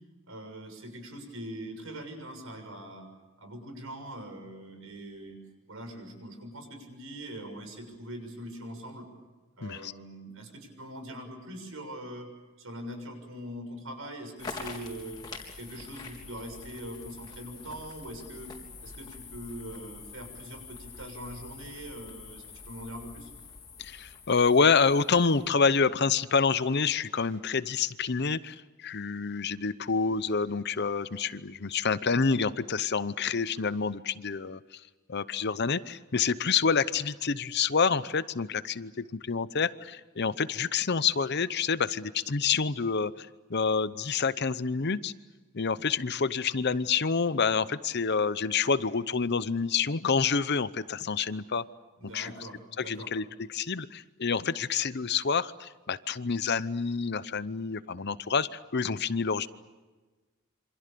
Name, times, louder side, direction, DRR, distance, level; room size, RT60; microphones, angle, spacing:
voice 1, 0.3-3.1 3.4-5.4 5.7-9.1 9.6-12.3 12.6-15.2 15.6-18.5 18.8-23.3 52.0-53.1, equal, 70° right, 6 dB, 6.8 m, -42 dB
voice 2, 9.6-9.9 23.8-34.8 35.1-45.1 45.5-51.7 52.1-52.3 52.8-59.5, left 5 dB, 50° left, 15 dB, 0.8 m, -28 dB
sound 1, 14.4-25.6, left 4 dB, 20° left, 3.8 m, -45 dB
27.5 x 26.0 x 6.9 m, 1.2 s
head